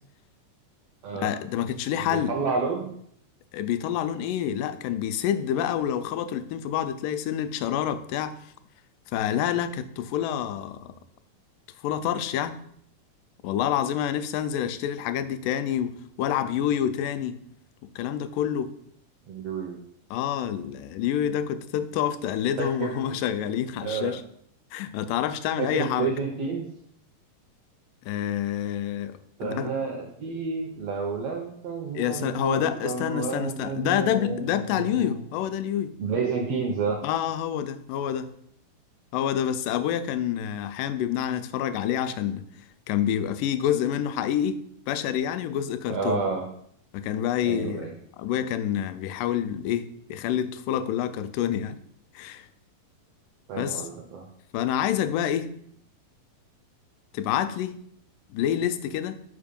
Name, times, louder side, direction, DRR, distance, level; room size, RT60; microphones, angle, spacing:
voice 1, 1.2-2.3 3.5-8.3 9.1-10.9 11.8-12.6 13.4-17.4 18.0-18.8 20.1-24.2 24.7-26.1 28.0-29.7 31.9-35.9 37.0-38.3 39.1-42.4 42.9-46.2 46.9-47.9 48.2-51.8 52.2-52.5 53.6-53.9 54.5-55.5 57.1-57.8 58.3-59.2, left 10 dB, 85° left, 11 dB, 2.1 m, -27 dB
voice 2, 2.0-2.9 19.3-19.8 22.6-23.2 23.8-24.2 25.6-26.7 29.4-35.2 36.0-37.0 45.9-46.4 47.4-47.9 53.5-54.2, right 4 dB, 85° right, 1 dB, 1.3 m, -30 dB
5.3 x 4.5 x 5.2 m, 0.67 s
omnidirectional pair, 3.8 m